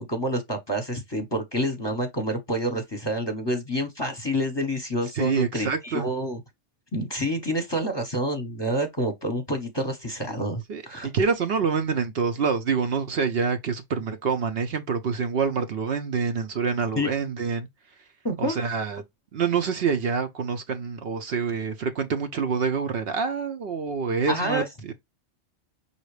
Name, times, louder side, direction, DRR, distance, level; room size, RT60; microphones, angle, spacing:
voice 1, 0.0-6.4 6.9-11.1 17.0-17.1 18.2-18.6 24.3-24.6, equal, 25° left, 0.9 m, -28 dB
voice 2, 5.1-6.1 10.7-17.7 18.4-19.0 19.3-24.9, right 5 dB, 60° right, 0.8 m, -26 dB
5.7 x 2.7 x 3.2 m
omnidirectional pair, 1.2 m